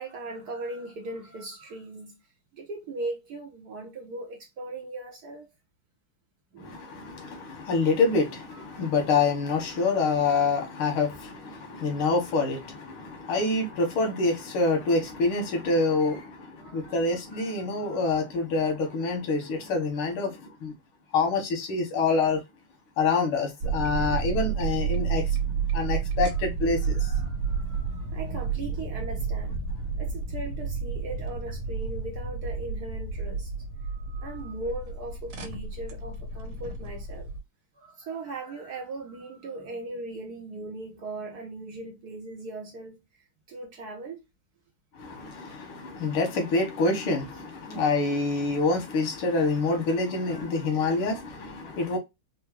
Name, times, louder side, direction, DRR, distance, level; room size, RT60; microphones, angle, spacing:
voice 1, 0.0-2.2 2.5-5.5 6.5-7.0 8.7-8.9 16.6-18.2 26.9-29.6 30.0-33.5 34.2-37.3 37.7-44.3 49.9-50.7, right 2 dB, 65° right, 1.0 m, -39 dB
voice 2, 6.6-20.7 21.1-22.4 23.0-25.3 25.7-27.1 45.0-52.0, left 3 dB, 85° left, 2.0 m, -26 dB
sound 1, 23.6-37.4, right 6 dB, 85° right, 1.6 m, -31 dB
4.4 x 2.0 x 2.9 m
omnidirectional pair, 2.3 m